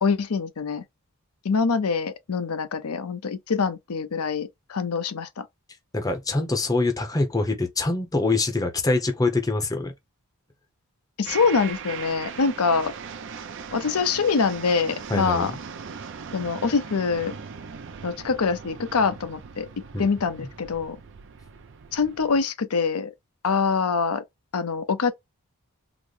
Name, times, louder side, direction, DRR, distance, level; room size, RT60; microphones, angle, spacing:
voice 1, 0.0-0.8 1.4-5.4 11.2-12.9 13.7-15.5 16.3-17.3 18.0-19.7 20.0-21.0 21.9-23.1 23.4-24.2 24.5-25.1, left 5 dB, 80° left, 0.6 m, -24 dB
voice 2, 5.9-9.9 15.1-15.6 19.9-20.1, left 2 dB, 15° left, 0.6 m, -24 dB
sound 1, 11.2-22.4, right 6 dB, 55° right, 0.5 m, -39 dB
3.9 x 2.1 x 3.1 m
head